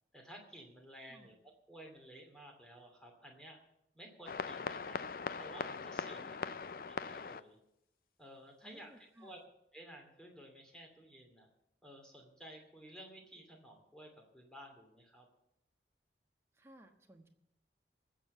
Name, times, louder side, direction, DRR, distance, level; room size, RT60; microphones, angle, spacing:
voice 1, 0.1-1.4 1.7-3.6 3.9-5.0 5.4-6.6 6.9-7.6 8.2-9.4 9.7-11.5 11.8-15.3, right 1 dB, 5° left, 1 dB, 2.6 m, -54 dB
sound 1, 4.3-7.4, left 5 dB, 50° left, 0.4 m, -40 dB
voice 2, 8.6-9.4 16.5-17.3, right 1 dB, 15° right, 3 dB, 1.3 m, -59 dB
20.0 x 7.6 x 6.8 m, 0.83 s
head